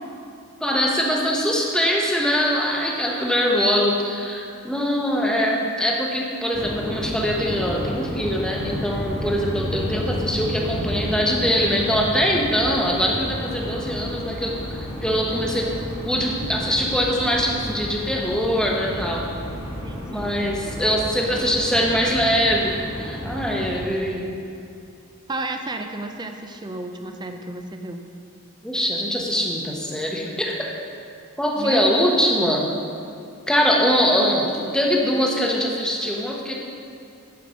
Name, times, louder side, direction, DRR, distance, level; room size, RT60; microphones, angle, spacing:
voice 1, 0.6-15.7 16.0-19.2 20.1-24.3 28.6-30.7 31.4-32.7 33.5-36.5, equal, 5° left, -2 dB, 0.9 m, -22 dB
sound 1, 6.5-23.9, equal, 25° left, 1.4 m, -31 dB
voice 2, 19.8-20.3 25.3-28.0 31.6-31.9, right 2 dB, 20° right, 5 dB, 0.5 m, -32 dB
11.0 x 5.2 x 5.1 m, 2.6 s
head